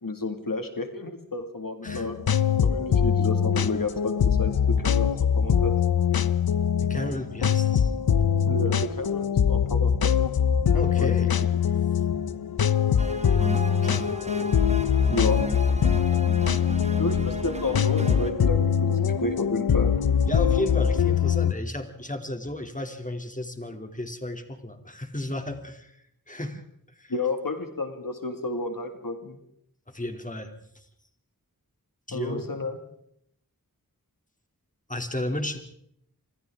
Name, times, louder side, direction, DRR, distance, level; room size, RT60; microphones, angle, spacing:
voice 1, 0.0-2.2 2.6-5.7 8.5-10.1 10.7-11.6 15.1-15.5 17.0-19.9 27.1-29.4 32.1-32.8, left 3 dB, 70° left, 6 dB, 2.1 m, -31 dB
sound 1, 1.9-21.5, left 7 dB, 85° left, 0.7 m, -23 dB
voice 2, 6.8-7.9 10.7-11.3 13.8-14.1 20.3-26.6 27.0-27.1 29.9-30.9 32.1-32.5 34.9-35.6, left 1 dB, 20° left, 5 dB, 2.9 m, -34 dB
sound 2, 13.0-18.3, right 1 dB, 20° right, 1.7 m, -35 dB
27.5 x 26.0 x 3.7 m, 0.71 s
wide cardioid pair, 55°, 35 cm